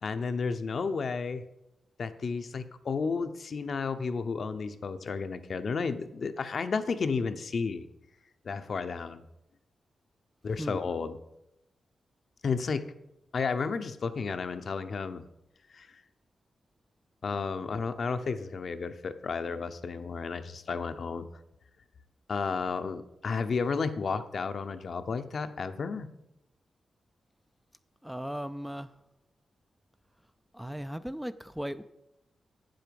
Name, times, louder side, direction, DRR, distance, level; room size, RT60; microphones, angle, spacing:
voice 1, 0.0-1.4 2.0-7.9 8.4-9.3 10.4-11.2 12.4-12.8 13.3-15.2 15.7-15.9 17.2-21.3 22.3-26.1, left 5 dB, 55° left, 9 dB, 0.8 m, -32 dB
voice 2, 28.0-28.9 30.5-31.8, equal, 5° right, 11 dB, 0.4 m, -37 dB
8.7 x 7.8 x 7.0 m, 0.85 s
cardioid pair, 100°, 0 cm